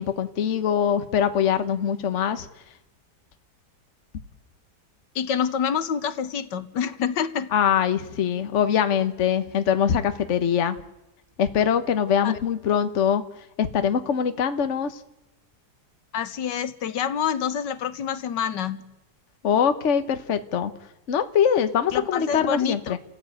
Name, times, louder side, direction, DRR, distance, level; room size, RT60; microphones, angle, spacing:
voice 1, 0.0-2.5 7.5-10.8 11.4-13.2 13.6-15.0 19.4-20.7 21.1-23.0, left 8 dB, 45° left, 10 dB, 1.3 m, -23 dB
voice 2, 5.1-7.5 12.2-12.4 16.1-18.9 21.9-23.0, left 8 dB, 80° left, 13 dB, 1.7 m, -27 dB
30.0 x 15.0 x 9.1 m, 0.98 s
omnidirectional pair, 1.9 m